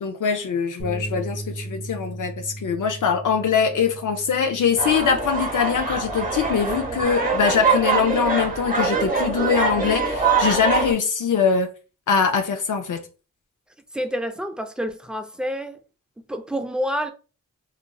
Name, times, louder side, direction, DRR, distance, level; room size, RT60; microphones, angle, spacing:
voice 1, 0.0-11.7 12.1-13.0, left 6 dB, 70° left, 0.5 m, -22 dB
Bass guitar, 0.8-7.0, right 1 dB, 35° left, 0.7 m, -37 dB
sound 1, 4.8-10.9, right 4 dB, 25° right, 0.8 m, -23 dB
voice 2, 13.9-15.8 16.3-17.1, equal, 5° right, 0.4 m, -28 dB
2.9 x 2.4 x 2.2 m
cardioid pair, 50°, 32 cm